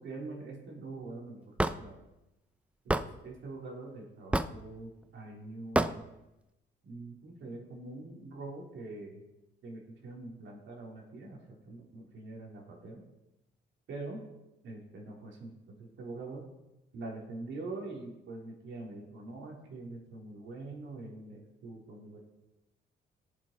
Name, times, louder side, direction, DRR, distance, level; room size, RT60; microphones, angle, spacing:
voice 1, 0.0-2.0 2.8-6.0 6.8-9.2 9.6-13.0 13.9-14.2 14.6-16.5 16.9-22.3, right 2 dB, 70° right, -1 dB, 3.8 m, -44 dB
Hammer / Wood, 1.6-1.8 2.9-3.1 4.3-4.6 5.8-5.9, right 1 dB, 5° right, 0.6 m, -27 dB
17.5 x 7.6 x 4.6 m, 0.95 s
cardioid pair, 90°, 20 cm